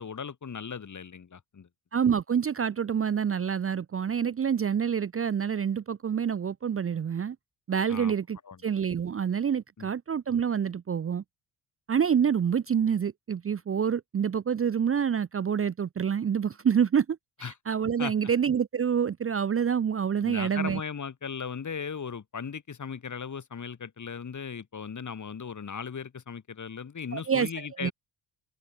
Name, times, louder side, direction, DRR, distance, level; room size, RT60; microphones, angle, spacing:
voice 1, 0.0-1.7 7.9-8.1 8.5-8.6 9.8-9.9 17.4-17.5 18.0-18.1 20.2-27.9, left 6 dB, 40° left, 2.4 m, -37 dB
voice 2, 1.9-7.4 7.7-11.2 11.9-20.8 27.1-27.9, right 7 dB, 30° right, 0.7 m, -27 dB
hypercardioid pair, 55°, 46 cm